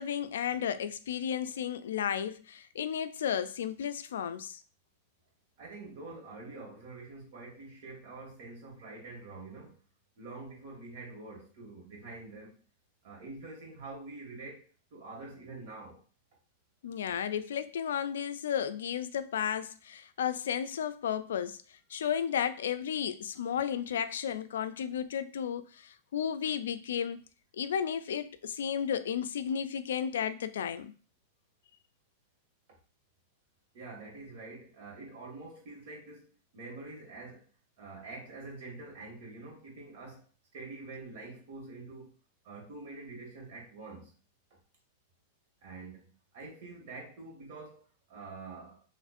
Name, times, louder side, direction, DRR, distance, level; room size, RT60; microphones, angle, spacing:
voice 1, 0.0-4.6 16.8-21.6 21.9-27.2 27.6-30.9, left 8 dB, 85° left, 0.3 m, -33 dB
voice 2, 5.6-9.8 10.2-12.6 13.0-16.0 33.7-37.5 37.8-40.2 40.5-42.1 42.4-44.1 45.6-48.8, right 3 dB, 65° right, 1.8 m, -46 dB
4.1 x 3.1 x 2.5 m
hypercardioid pair, 130°, 0 cm